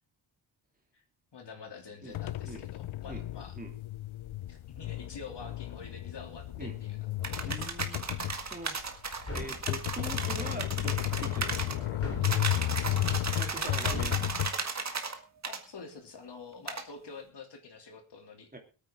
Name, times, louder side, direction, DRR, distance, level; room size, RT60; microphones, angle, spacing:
voice 1, 1.3-3.6 4.5-7.0 7.2-7.8 13.5-13.7 15.4-18.6, left 4 dB, 55° left, 3 dB, 3.2 m, -47 dB
sound 1, 2.1-14.5, left 14 dB, 70° left, 0.6 m, -33 dB
sound 2, 7.2-11.8 12.2-15.2 15.4-15.6 16.7-16.9, right 4 dB, 35° right, 1.7 m, -35 dB
voice 2, 7.4-8.7 9.3-12.7 13.3-14.3 18.5-18.6, right 1 dB, 15° right, 3 dB, 2.7 m, -43 dB
sound 3, 9.2-9.8 12.0-12.5 13.9-14.3, left 2 dB, 25° left, 4.1 m, -38 dB
22.5 x 9.1 x 3.8 m, 0.34 s
wide cardioid pair, 170°, 50 cm